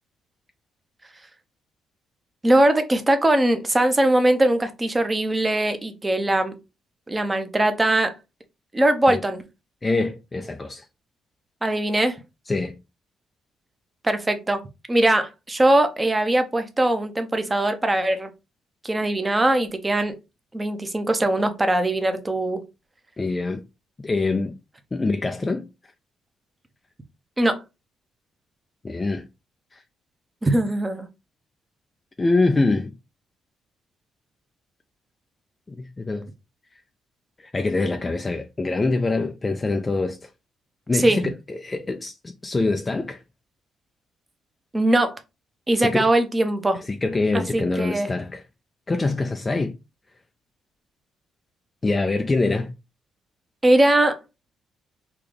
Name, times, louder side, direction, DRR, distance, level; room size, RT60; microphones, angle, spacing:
voice 1, 2.4-6.5 7.1-8.1 8.7-9.4 11.6-12.2 14.0-14.6 14.9-18.3 18.8-20.1 20.5-22.6 27.4-27.6 30.4-31.1 40.9-41.2 44.7-45.2 45.7-46.8 47.3-48.1 53.6-54.2, right 1 dB, 20° right, 0.7 m, -21 dB
voice 2, 9.8-10.9 12.5-12.8 23.2-23.6 24.0-24.6 24.9-25.7 28.8-29.2 29.7-29.8 32.2-32.9 35.7-36.3 37.4-40.3 40.9-43.2 45.8-46.1 46.8-48.4 48.9-49.7 51.8-52.7, left 3 dB, 25° left, 0.4 m, -24 dB
3.7 x 2.3 x 3.2 m
cardioid pair, 90°, 0 cm